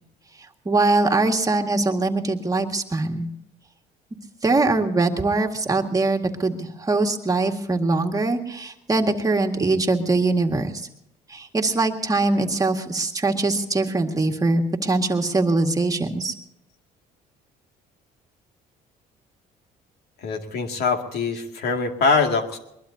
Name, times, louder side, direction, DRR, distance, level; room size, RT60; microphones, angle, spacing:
voice 1, 0.7-3.3 4.4-10.9 11.3-16.3, right 3 dB, 20° right, 3 dB, 1.9 m, -22 dB
voice 2, 20.2-22.6, left 4 dB, 75° left, 4 dB, 2.3 m, -23 dB
21.5 x 21.5 x 2.8 m, 0.82 s
cardioid pair, 110°, 17 cm